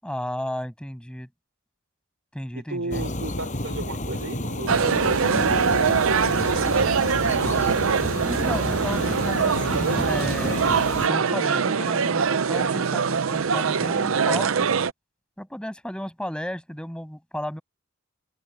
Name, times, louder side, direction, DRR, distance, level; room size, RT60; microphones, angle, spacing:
voice 1, 0.0-1.3 2.3-3.1 8.2-10.6 11.1-14.7 15.4-17.6, equal, 5° left, 7.4 m, -33 dB
voice 2, 2.5-7.6, right 2 dB, 90° right, 4.3 m, -35 dB
sound 1, 2.9-11.1, left 1 dB, 40° left, 6.4 m, -30 dB
sound 2, 4.7-14.9, right 5 dB, 75° right, 0.6 m, -23 dB
open air
head